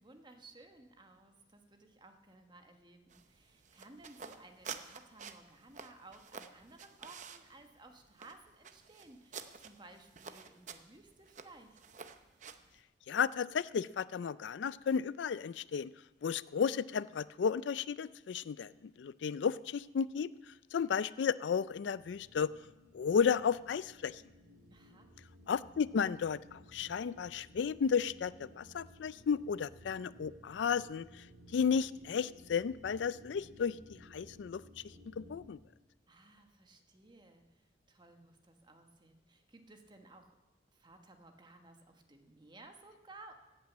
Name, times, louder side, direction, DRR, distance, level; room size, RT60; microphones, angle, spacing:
voice 1, 0.0-11.8 24.7-25.1 36.1-40.3 40.7-43.3, right 2 dB, 25° right, 5 dB, 1.3 m, -57 dB
sound 1, 3.1-12.8, right 6 dB, 40° right, 0.7 m, -50 dB
voice 2, 13.1-15.9 16.2-20.3 20.7-22.5 22.9-24.2 25.5-31.2 31.5-34.6 35.2-35.6, left 6 dB, 75° left, 18 dB, 0.4 m, -33 dB
sound 2, 21.7-35.5, equal, 85° right, 2.6 m, -58 dB
16.0 x 9.0 x 7.3 m, 1.1 s
head